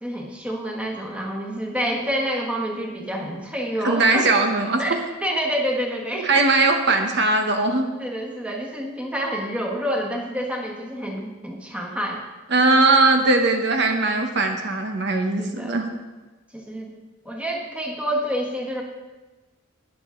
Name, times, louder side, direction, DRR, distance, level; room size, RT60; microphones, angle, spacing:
voice 1, 0.0-4.3 4.8-6.4 6.9-7.0 8.0-12.2 15.4-15.8 16.5-16.9 17.2-18.8, equal, 5° right, 0 dB, 1.5 m, -28 dB
voice 2, 3.8-4.8 6.2-7.9 12.5-15.9, right 3 dB, 55° right, 4 dB, 1.1 m, -19 dB
20.5 x 7.2 x 3.8 m, 1.2 s
head